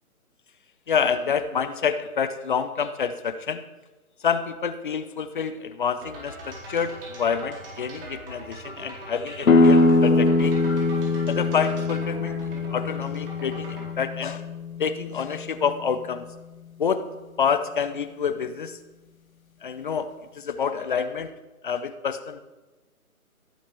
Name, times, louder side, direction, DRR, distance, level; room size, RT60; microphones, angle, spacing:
voice 1, 0.9-3.6 4.2-10.6 11.3-14.4 14.8-16.3 16.8-17.1 17.4-18.8 19.6-21.3 21.6-22.4, left 6 dB, 35° left, 11 dB, 0.7 m, -28 dB
sound 1, 6.0-13.9, right 1 dB, 40° right, 4.3 m, -41 dB
sound 2, 9.5-15.0, left 3 dB, 65° left, 1.3 m, -22 dB
17.0 x 7.2 x 4.5 m, 1.2 s
figure-of-eight pair, 145°, 44 cm